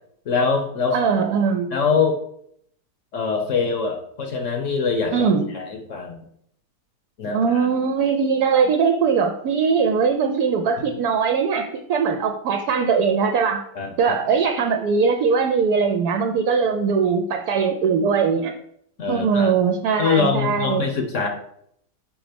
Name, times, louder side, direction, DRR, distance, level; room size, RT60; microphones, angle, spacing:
voice 1, 0.3-1.0 1.7-2.2 3.1-6.2 7.2-7.7 10.8-10.9 13.7-14.2 19.0-19.5 20.0-21.3, left 5 dB, 55° left, 4 dB, 1.1 m, -23 dB
voice 2, 0.9-1.7 5.1-5.5 7.3-13.6 14.0-18.5 19.1-20.9, right 5 dB, 75° right, 3 dB, 1.2 m, -21 dB
5.8 x 5.0 x 5.1 m, 0.70 s
omnidirectional pair, 1.8 m